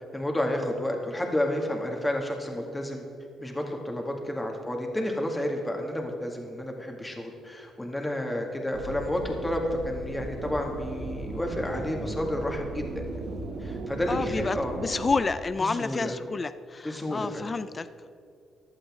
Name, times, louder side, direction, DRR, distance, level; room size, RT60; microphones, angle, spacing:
voice 1, 0.1-3.0 3.4-13.1 13.6-14.7 15.6-16.2 16.8-17.5, left 1 dB, 10° left, 1 dB, 2.1 m, -31 dB
sound 1, 8.7-15.2, right 3 dB, 75° right, 1.6 m, -37 dB
voice 2, 14.1-17.9, left 4 dB, 30° left, 13 dB, 0.4 m, -29 dB
15.0 x 11.0 x 3.7 m, 2.6 s
cardioid pair, 90°, 0 cm